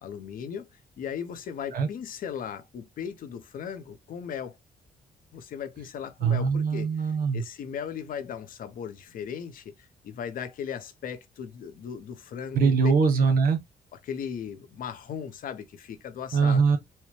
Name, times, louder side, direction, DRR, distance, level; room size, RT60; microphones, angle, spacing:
voice 1, 0.0-4.6 5.3-12.9 14.0-16.6, left 8 dB, 70° left, 0.8 m, -37 dB
voice 2, 6.2-7.4 12.5-13.6 16.3-16.8, right 5 dB, 75° right, 1.2 m, -22 dB
4.4 x 2.2 x 3.1 m
cardioid pair, 115°, 15 cm